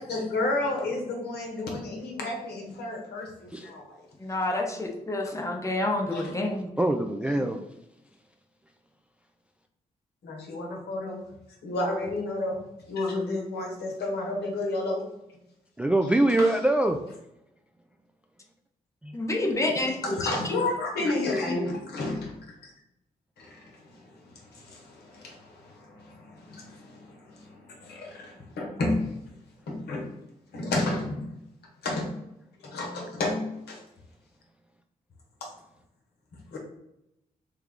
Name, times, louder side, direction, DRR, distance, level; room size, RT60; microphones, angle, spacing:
voice 1, 0.0-4.1 6.1-6.3 7.4-7.5 10.2-11.2 11.6-15.1 16.4-16.5 19.7-22.7 23.4-29.1 29.7-30.1 30.5-31.3 31.8-32.1 32.6-33.8 35.4-35.5 36.5-36.6, left 2 dB, 70° left, 0 dB, 0.9 m, -32 dB
voice 2, 4.2-6.7 19.1-20.2, left 2 dB, 15° left, 2 dB, 0.9 m, -28 dB
voice 3, 6.8-7.6 15.8-17.0 19.0-19.2 21.3-21.4, right 1 dB, 5° right, 5 dB, 0.3 m, -24 dB
3.3 x 2.3 x 3.5 m, 0.85 s
hypercardioid pair, 40°, 17 cm